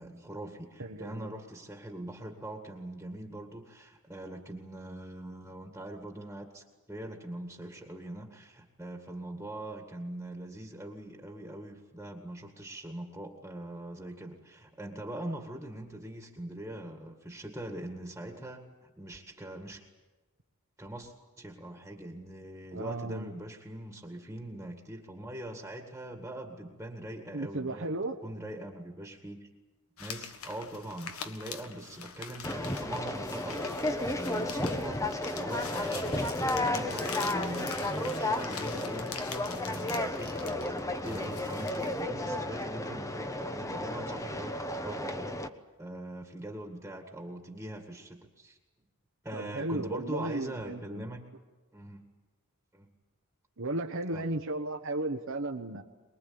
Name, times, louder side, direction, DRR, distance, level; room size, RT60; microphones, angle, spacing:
voice 1, 0.0-19.9 20.8-27.9 28.2-29.5 30.0-45.3 45.8-48.6 49.2-51.2 51.7-52.0 52.7-52.9 54.1-54.3, right 1 dB, 10° right, 3 dB, 2.0 m, -42 dB
voice 2, 0.8-1.3 22.7-23.3 27.3-28.2 49.3-51.1 53.6-55.8, right 2 dB, 60° right, 2 dB, 1.2 m, -34 dB
sound 1, 30.0-42.0, left 6 dB, 70° left, 1.6 m, -44 dB
Conversation, 32.4-45.5, left 1 dB, 15° left, 1.1 m, -33 dB
23.5 x 22.0 x 8.8 m, 1.2 s
head